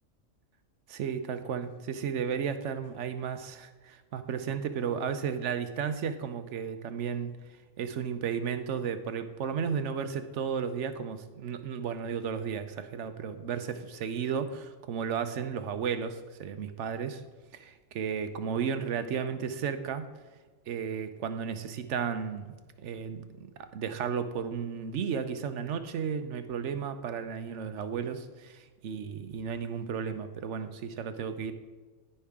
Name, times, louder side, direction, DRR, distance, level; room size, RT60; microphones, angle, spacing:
voice 1, 0.9-7.3 7.8-17.2 17.5-20.1 20.7-31.5, right 7 dB, 70° right, 9 dB, 1.0 m, -34 dB
17.0 x 5.6 x 3.6 m, 1.3 s
omnidirectional pair, 1.4 m